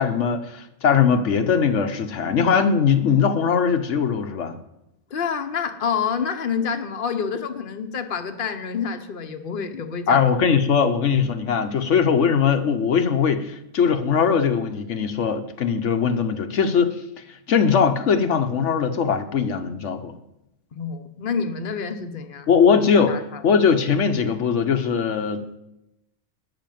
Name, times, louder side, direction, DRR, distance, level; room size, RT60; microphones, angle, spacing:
voice 1, 0.0-4.6 10.1-17.0 17.5-20.1 22.5-25.6, left 6 dB, 75° left, 7 dB, 1.2 m, -20 dB
voice 2, 5.1-10.3 20.7-22.5 23.1-23.4, left 6 dB, 50° left, 6 dB, 1.1 m, -28 dB
13.0 x 5.6 x 9.2 m, 0.86 s
omnidirectional pair, 1.2 m